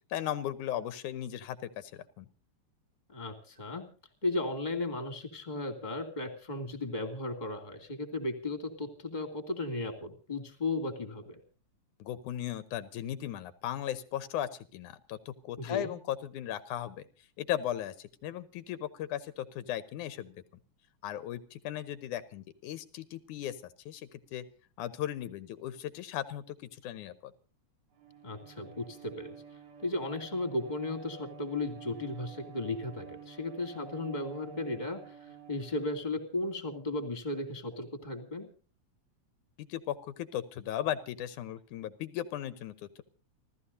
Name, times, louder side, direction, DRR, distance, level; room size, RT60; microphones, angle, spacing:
voice 1, 0.1-2.3 12.0-17.0 17.4-20.4 21.0-23.6 23.9-24.4 24.8-26.6 26.8-27.3 39.6-43.0, left 11 dB, 85° left, 13 dB, 2.4 m, -37 dB
voice 2, 3.1-3.8 4.2-11.4 15.6-15.9 28.2-29.3 29.8-35.1 35.5-38.5, left 2 dB, 15° left, 6 dB, 2.3 m, -35 dB
Bowed string instrument, 27.9-36.3, right 6 dB, 60° right, 3.7 m, -50 dB
30.0 x 13.5 x 2.7 m, 0.37 s
omnidirectional pair, 3.5 m